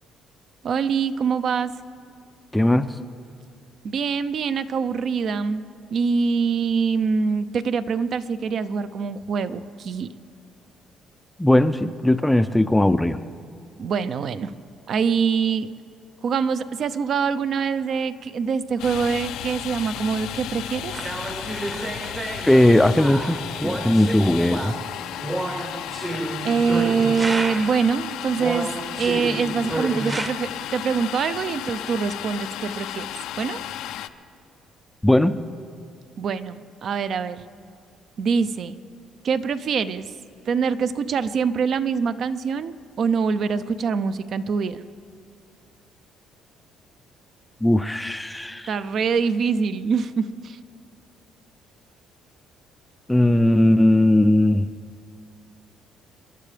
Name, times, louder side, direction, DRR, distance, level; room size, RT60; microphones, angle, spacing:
voice 1, 0.6-1.7 3.8-5.6 5.9-10.1 13.8-14.5 14.9-15.7 16.2-20.9 26.4-33.1 33.4-33.6 36.2-37.4 38.2-38.8 39.2-40.1 40.5-44.8 48.7-50.6, right 5 dB, 55° right, 13 dB, 0.6 m, -24 dB
voice 2, 2.5-3.0 11.4-13.2 22.5-24.8 35.0-35.4 47.6-48.7 53.1-54.7, left 1 dB, 5° left, 10 dB, 0.4 m, -18 dB
Domestic sounds home sounds, 18.8-34.1, left 11 dB, 80° left, 0.5 m, -34 dB
sound 1, 20.9-27.9 28.4-30.3, right 2 dB, 20° right, 0.9 m, -31 dB
29.0 x 11.5 x 3.4 m, 2.3 s
cardioid pair, 105°, 0 cm